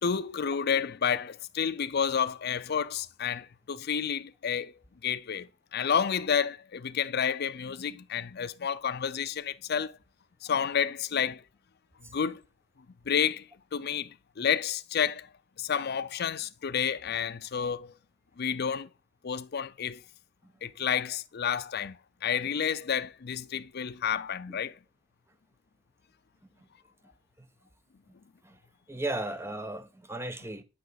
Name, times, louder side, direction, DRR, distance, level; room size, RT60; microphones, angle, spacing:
voice 1, 0.0-4.7 5.0-10.0 10.4-11.4 12.1-12.4 13.1-15.3 15.6-17.9 18.4-18.9 19.2-20.0 20.6-24.7, left 7 dB, 55° left, 0.5 m, -30 dB
voice 2, 28.9-30.6, right 1 dB, 15° right, 0.9 m, -36 dB
11.0 x 5.8 x 4.0 m
head